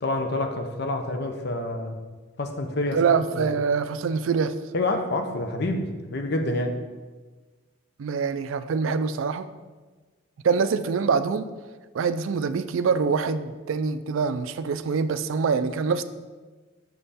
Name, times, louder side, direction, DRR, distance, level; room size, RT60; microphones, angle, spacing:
voice 1, 0.0-2.0 2.4-3.0 4.7-6.7, left 2 dB, 50° left, 5 dB, 0.7 m, -27 dB
voice 2, 2.9-4.5 8.0-9.5 10.4-11.5 11.9-16.0, right 5 dB, 70° right, 12 dB, 0.4 m, -24 dB
6.3 x 5.5 x 4.1 m, 1.3 s
head